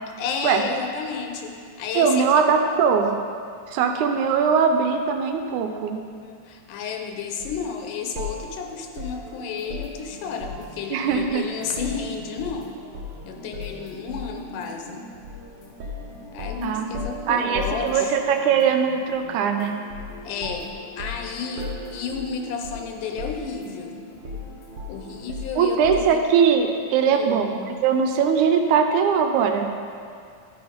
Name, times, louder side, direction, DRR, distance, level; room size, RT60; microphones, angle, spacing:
voice 1, 0.2-2.4 2.7-2.8 6.2-12.7 13.3-15.0 16.3-18.1 20.2-20.7 21.0-24.0 24.9-26.2 27.1-27.5, left 6 dB, 85° left, 3 dB, 2.4 m, -32 dB
voice 2, 2.0-3.1 3.7-6.0 10.9-11.5 16.6-16.9 17.3-19.8 25.6-29.7, right 6 dB, 80° right, 5 dB, 2.0 m, -21 dB
sound 1, 7.4-7.6 8.2-10.8 11.1-12.6 12.9-13.2 13.5-14.4 15.2-15.4 15.8-18.4 19.9-20.2 20.4-22.9 23.2-23.8 24.2-26.2, left 2 dB, 60° right, 1.5 m, -36 dB
sound 2, 9.1-25.2, left 1 dB, 50° left, 2.3 m, -45 dB
12.0 x 4.7 x 5.1 m, 2.2 s
omnidirectional pair, 3.6 m